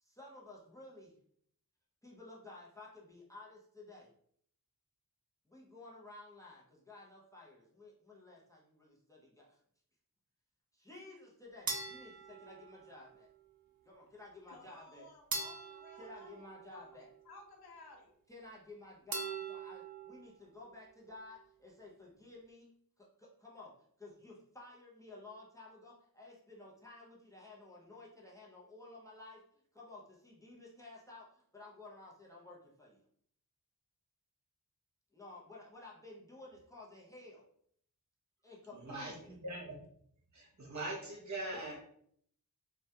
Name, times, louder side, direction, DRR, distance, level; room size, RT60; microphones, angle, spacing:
voice 1, 0.0-1.1 2.0-4.1 5.5-9.6 10.7-13.3 13.8-15.1 16.0-17.1 18.3-23.7 24.0-29.4 29.7-33.0 35.1-37.4 38.4-39.4 41.5-41.8, left 2 dB, 10° left, -3 dB, 0.6 m, -54 dB
sound 1, 11.7-13.2 15.3-17.1 19.1-20.2, right 4 dB, 65° right, 0.5 m, -42 dB
voice 2, 14.5-18.1, left 2 dB, 80° left, 1 dB, 0.6 m, -57 dB
voice 3, 38.7-39.8 40.3-41.8, right 2 dB, 50° right, -2 dB, 0.9 m, -42 dB
2.2 x 2.2 x 2.8 m, 0.64 s
wide cardioid pair, 85°, 37 cm